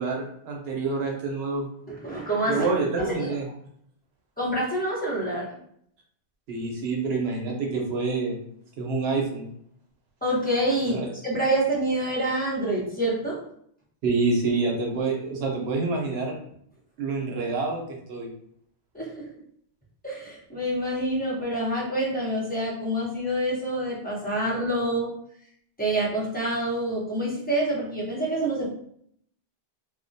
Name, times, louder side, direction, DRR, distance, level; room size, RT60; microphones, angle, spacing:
voice 1, 0.0-1.7 2.5-3.5 6.5-8.4 8.8-9.5 10.9-11.1 14.0-16.3 17.0-18.3, right 3 dB, 75° right, 0 dB, 0.8 m, -27 dB
voice 2, 1.9-2.7 3.0-3.3 4.4-5.5 10.2-11.0 11.2-13.4 18.9-19.2 20.0-25.1 25.8-28.7, right 1 dB, 10° left, -8 dB, 0.7 m, -27 dB
2.2 x 2.1 x 2.6 m, 0.67 s
omnidirectional pair, 1.1 m